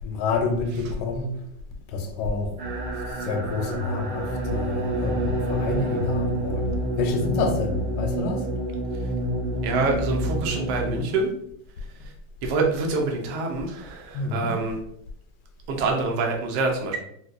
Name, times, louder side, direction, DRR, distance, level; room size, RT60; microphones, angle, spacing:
voice 1, 0.0-1.5 1.9-2.5 3.1-8.5 14.1-14.5, left 3 dB, 75° left, 4 dB, 1.1 m, -28 dB
sound 1, 2.6-11.0, right 1 dB, 90° right, 1.7 m, -28 dB
voice 2, 9.6-11.3 12.0-12.1 12.4-14.8 15.7-17.0, right 3 dB, 75° right, 1 dB, 0.9 m, -26 dB
4.1 x 2.2 x 2.5 m, 0.71 s
omnidirectional pair, 2.3 m